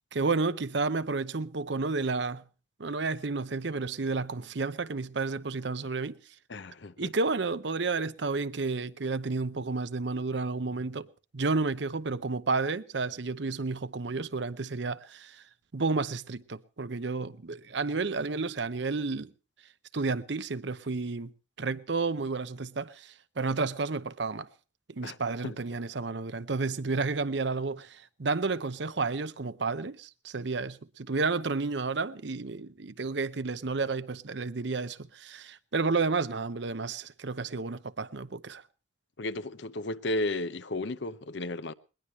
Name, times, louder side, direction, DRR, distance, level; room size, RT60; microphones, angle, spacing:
voice 1, 0.1-2.4 2.8-6.2 7.0-11.1 11.3-15.4 15.7-19.3 19.9-21.3 21.6-24.5 24.9-38.6, right 3 dB, 60° right, 0.8 m, -31 dB
voice 2, 6.5-7.1 25.0-25.2 25.4-25.6 39.2-41.7, left 2 dB, 65° left, 0.9 m, -33 dB
21.0 x 20.0 x 3.1 m
head